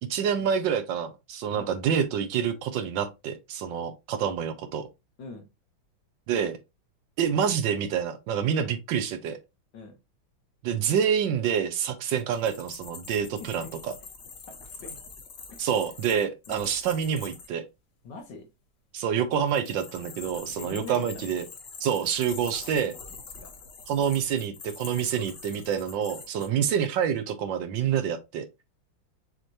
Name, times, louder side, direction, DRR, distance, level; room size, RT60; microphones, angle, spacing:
voice 1, 0.1-4.9 6.3-6.6 7.2-9.4 10.6-13.9 15.6-17.7 18.9-21.4 21.8-23.0 23.9-28.5, right 8 dB, 75° right, 1.3 m, -27 dB
sound 1, 12.2-17.5 19.3-26.5, left 5 dB, 50° left, 0.8 m, -44 dB
voice 2, 13.4-13.7 14.5-15.0 15.5-15.8 16.5-16.6 18.0-18.5 20.6-21.4 23.4-23.5 26.5-26.7, left 3 dB, 65° left, 1.7 m, -43 dB
6.5 x 3.0 x 2.6 m
omnidirectional pair, 2.2 m